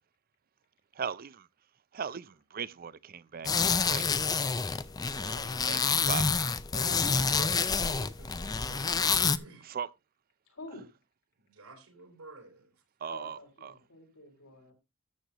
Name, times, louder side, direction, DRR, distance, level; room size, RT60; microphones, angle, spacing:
voice 1, 0.9-1.5 1.9-4.1 5.1-6.5 9.6-9.9 13.0-13.7, right 7 dB, 40° right, 0.5 m, -39 dB
sound 1, 3.4-9.4, left 5 dB, 15° left, 0.4 m, -28 dB
voice 2, 6.7-9.7 11.4-12.7, right 2 dB, 85° right, 3.8 m, -49 dB
voice 3, 10.5-10.9 13.1-14.7, left 2 dB, 85° left, 6.0 m, -48 dB
13.5 x 7.7 x 2.9 m
head